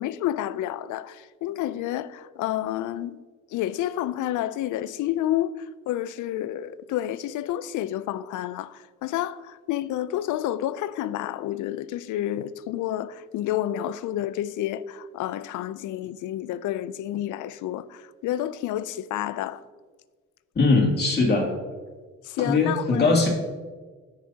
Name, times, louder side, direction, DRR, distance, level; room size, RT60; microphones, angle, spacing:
voice 1, 0.0-3.2 3.5-19.6 22.2-23.3, left 12 dB, 80° left, 0.5 m, -30 dB
voice 2, 20.5-21.5 22.4-23.3, left 3 dB, 35° left, 2.5 m, -20 dB
14.5 x 5.7 x 2.8 m
cardioid pair, 90°, 30 cm